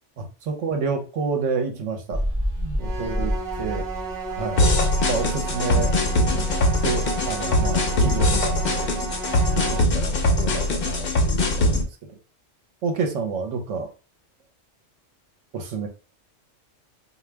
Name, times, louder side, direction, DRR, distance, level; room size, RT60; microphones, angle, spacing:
voice 1, 0.2-2.2 2.6-3.8 4.4-4.6 5.0-5.9 6.3-6.5 6.8-8.9 9.6-11.9 12.8-13.9 15.5-15.9, right 4 dB, 80° right, 4 dB, 1.2 m, -29 dB
sound 1, 2.1-6.0 6.2-9.7, equal, 5° left, 1.5 m, -31 dB
sound 2, 2.8-9.8, right 4 dB, 35° right, 1.6 m, -32 dB
sound 3, 4.6-11.8, left 1 dB, 55° left, 0.9 m, -22 dB
3.9 x 2.6 x 3.3 m, 0.34 s
omnidirectional pair, 1.3 m